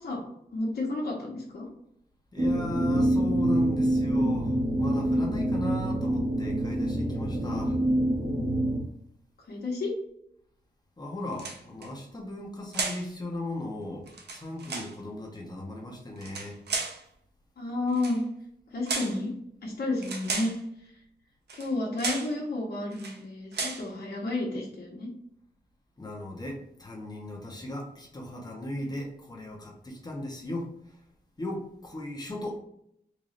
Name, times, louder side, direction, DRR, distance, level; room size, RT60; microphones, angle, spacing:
voice 1, 0.5-1.7 9.5-9.9 17.6-18.2 18.7-19.3 19.6-20.5 21.6-25.1, left 2 dB, 65° left, -5 dB, 1.1 m, -31 dB
voice 2, 2.3-4.5 4.8-7.8 11.0-16.6 26.0-30.7 31.4-32.6, left 1 dB, 25° left, 0 dB, 0.9 m, -37 dB
sound 1, 2.4-8.8, right 1 dB, 50° right, 1.2 m, -26 dB
sound 2, 11.3-11.9 12.7-13.1 14.1-14.9 16.2-17.0 17.9-18.2 18.9-19.2 20.0-20.6 21.5-21.7 22.0-22.3 22.9-23.2 23.5-23.9, right 4 dB, 90° right, 0.7 m, -34 dB
3.9 x 2.6 x 3.2 m, 0.73 s
wide cardioid pair, 160°, 17 cm